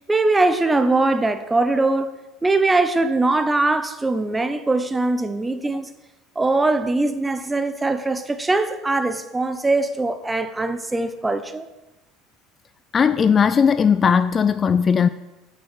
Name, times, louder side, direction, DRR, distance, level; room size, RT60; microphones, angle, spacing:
voice 1, 0.1-5.9 6.4-11.7, right 2 dB, 15° right, 1.0 m, -21 dB
voice 2, 12.9-15.1, left 6 dB, 30° left, 0.4 m, -17 dB
9.0 x 7.3 x 7.1 m
figure-of-eight pair, 65°, 0 cm